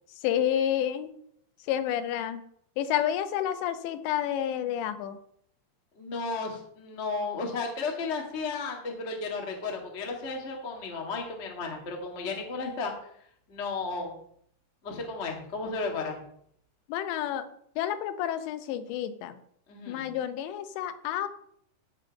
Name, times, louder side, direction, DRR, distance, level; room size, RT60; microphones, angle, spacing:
voice 1, 0.2-1.1 1.6-2.4 2.8-5.2 16.9-17.5 17.8-19.4 19.9-21.3, left 10 dB, 90° left, 10 dB, 3.1 m, -29 dB
voice 2, 6.0-12.9 13.5-14.2 14.8-16.2 19.7-20.1, left 4 dB, 70° left, 0 dB, 0.6 m, -34 dB
15.5 x 5.4 x 5.2 m, 0.69 s
omnidirectional pair, 4.9 m